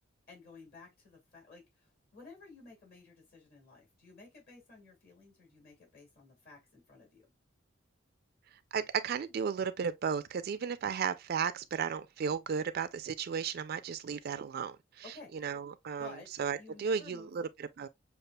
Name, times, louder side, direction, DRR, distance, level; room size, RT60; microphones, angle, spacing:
voice 1, 0.3-7.3 15.0-15.5 16.0-16.3 16.6-17.3, left 3 dB, 50° left, 2.1 m, -54 dB
voice 2, 8.7-14.8 15.4-16.1 16.4-17.9, right 6 dB, 50° right, 0.3 m, -34 dB
6.5 x 2.4 x 2.3 m
head